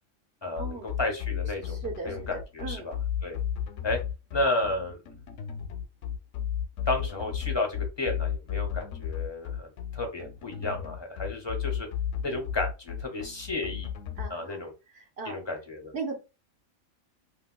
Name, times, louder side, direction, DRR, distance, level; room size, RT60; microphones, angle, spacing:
voice 1, 0.4-1.8 2.0-2.9 3.2-3.4 3.8-4.0 4.3-5.0 6.9-11.9 12.2-13.9 14.3-14.7 15.2-15.9, left 2 dB, 25° left, 3 dB, 0.7 m, -32 dB
sound 1, 0.6-14.3, left 9 dB, 70° left, 0.9 m, -33 dB
voice 2, 1.7-2.3 2.6-2.9 14.2-14.7 14.9-15.4 15.9-16.2, right 4 dB, 55° right, 0 dB, 1.1 m, -37 dB
3.0 x 2.9 x 2.2 m, 0.28 s
omnidirectional pair, 1.4 m